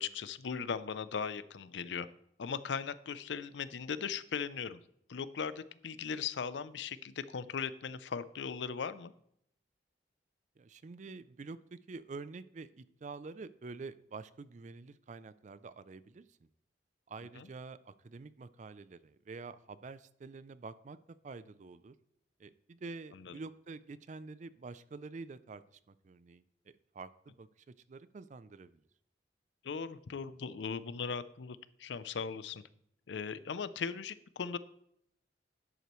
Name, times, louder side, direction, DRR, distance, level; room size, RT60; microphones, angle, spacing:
voice 1, 0.0-2.1 2.4-4.8 5.1-9.1 17.4-17.5 23.1-23.3 29.6-32.6 33.1-34.6, left 6 dB, 80° left, 15 dB, 0.5 m, -38 dB
voice 2, 10.6-16.5 17.1-21.0 21.2-21.9 22.4-28.8, right 4 dB, 40° right, 16 dB, 0.4 m, -48 dB
11.0 x 8.1 x 3.1 m, 0.72 s
head